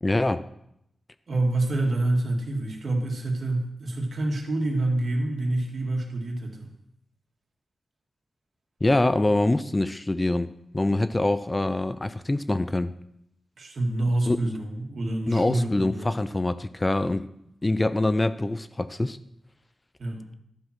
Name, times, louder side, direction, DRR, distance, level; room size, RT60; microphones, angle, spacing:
voice 1, 0.0-0.4 8.8-12.9 14.3-14.4 15.3-17.3 17.6-19.2, left 2 dB, 25° left, 13 dB, 0.5 m, -24 dB
voice 2, 1.3-6.7 13.6-16.1 20.0-20.3, right 2 dB, 65° right, 1 dB, 2.1 m, -27 dB
12.0 x 4.8 x 5.9 m, 0.77 s
cardioid pair, 55°, 0 cm